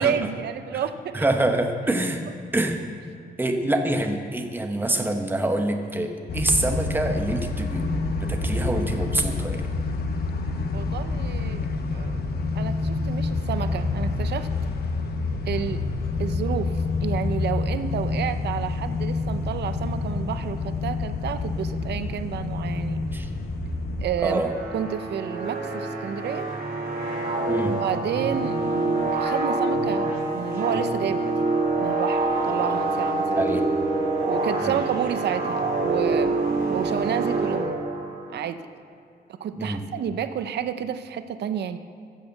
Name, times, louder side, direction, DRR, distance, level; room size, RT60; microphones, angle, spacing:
voice 1, 0.0-1.2 10.7-12.2 12.6-14.5 15.5-15.8 16.2-16.7 17.0-23.0 24.0-24.4 24.7-26.5 27.6-28.6 29.1-31.5 31.8-33.4 34.3-36.4 36.7-37.8 38.3-38.6 39.4-41.8, right 9 dB, 90° right, 10 dB, 0.6 m, -30 dB
voice 2, 1.1-2.2 2.5-2.8 3.4-9.6 23.1-23.3 24.2-24.5 27.5-27.8 33.4-33.6 34.6-34.7 39.6-39.8, right 1 dB, 10° right, 4 dB, 1.0 m, -25 dB
sound 1, 6.3-24.1, left 3 dB, 70° left, 1.1 m, -28 dB
sound 2, 24.2-38.3, right 2 dB, 60° right, 3.3 m, -26 dB
14.5 x 6.6 x 7.8 m, 2.4 s
wide cardioid pair, 135°, 17 cm